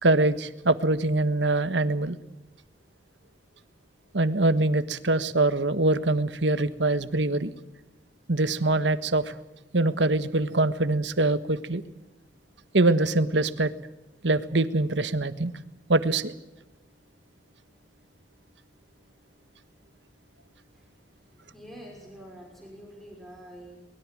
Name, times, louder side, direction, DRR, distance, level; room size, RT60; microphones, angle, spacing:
voice 1, 0.0-2.2 4.1-7.5 8.3-9.3 9.7-11.8 12.7-13.7 14.2-15.5 15.9-16.3, right 2 dB, 90° right, 12 dB, 1.5 m, -23 dB
voice 2, 20.7-23.9, equal, ahead, 0 dB, 5.7 m, -47 dB
24.0 x 21.5 x 7.7 m, 0.98 s
head